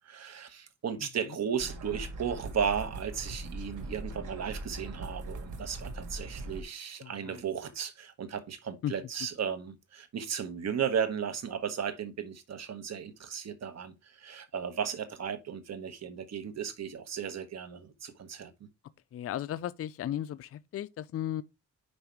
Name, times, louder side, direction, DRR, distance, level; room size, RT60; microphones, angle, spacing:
voice 1, 0.0-18.7, right 7 dB, 60° right, 1.2 m, -35 dB
sound 1, 1.6-6.6, right 2 dB, 85° right, 1.5 m, -40 dB
voice 2, 7.0-7.4 8.8-8.9 19.1-21.4, left 11 dB, 50° left, 0.4 m, -35 dB
5.3 x 4.9 x 4.5 m
cardioid pair, 115°, 30 cm